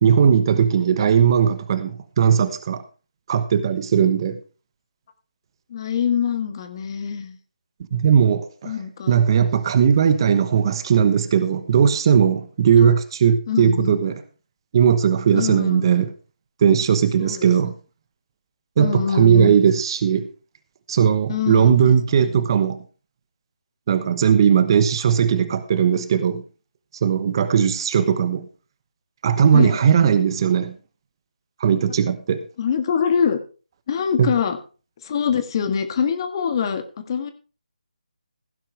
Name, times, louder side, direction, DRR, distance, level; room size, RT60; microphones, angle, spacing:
voice 1, 0.0-2.8 3.3-4.4 7.9-8.7 9.1-14.2 14.7-16.1 16.6-17.7 18.8-20.3 20.9-22.8 23.9-26.4 27.0-28.5 29.2-30.8 31.6-32.4 34.2-34.3, right 7 dB, 35° right, 1.1 m, -18 dB
voice 2, 5.7-7.4 8.6-9.2 12.8-12.9 13.5-14.0 15.3-15.9 17.2-17.5 18.8-19.7 21.3-21.9 22.2-22.3 29.5-29.8 32.6-33.4 33.9-34.6 35.0-37.3, left 7 dB, 35° left, 1.7 m, -24 dB
16.0 x 10.5 x 3.3 m
figure-of-eight pair, 155°, 5 cm